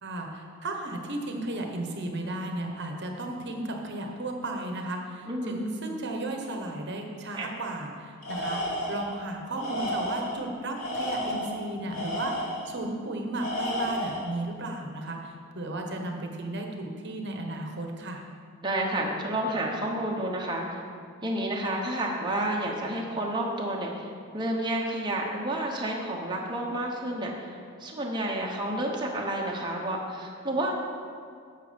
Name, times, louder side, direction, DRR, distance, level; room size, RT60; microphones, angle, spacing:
voice 1, 0.0-18.2, right 1 dB, 50° right, 2 dB, 1.2 m, -34 dB
voice 2, 5.3-5.6 7.3-7.5 18.6-20.8 21.2-30.8, right 1 dB, 20° right, -2 dB, 1.1 m, -30 dB
Tools, 8.2-9.1 9.6-10.4 10.8-12.7 13.4-14.3, equal, 75° left, 2.6 m, -32 dB
11.0 x 7.5 x 5.2 m, 2.2 s
head